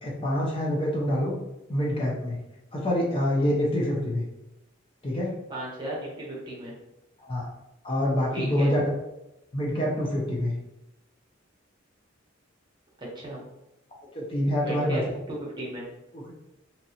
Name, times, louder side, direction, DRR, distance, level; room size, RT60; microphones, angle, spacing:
voice 1, 0.0-1.4 1.7-2.4 2.7-4.3 5.0-5.3 7.2-7.5 7.8-8.9 9.5-10.6 14.1-15.0 16.1-16.3, left 1 dB, 25° left, -4 dB, 0.6 m, -26 dB
voice 2, 5.5-6.7 8.3-8.7 13.0-13.4 14.6-15.8, right 1 dB, 25° right, -4 dB, 0.9 m, -35 dB
2.9 x 2.6 x 2.8 m, 0.93 s
head